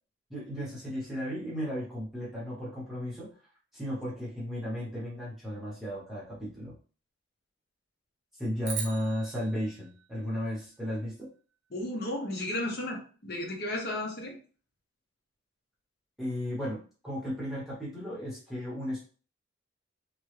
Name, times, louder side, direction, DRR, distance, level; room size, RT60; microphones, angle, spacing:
voice 1, 0.3-3.3 3.7-6.7 8.4-11.3 16.2-19.0, equal, ahead, -8 dB, 1.1 m, -35 dB
sound 1, 8.6-11.1, right 7 dB, 55° right, 0.7 m, -41 dB
voice 2, 11.7-14.3, left 1 dB, 50° left, 0 dB, 0.9 m, -34 dB
3.0 x 2.3 x 3.2 m, 0.39 s
head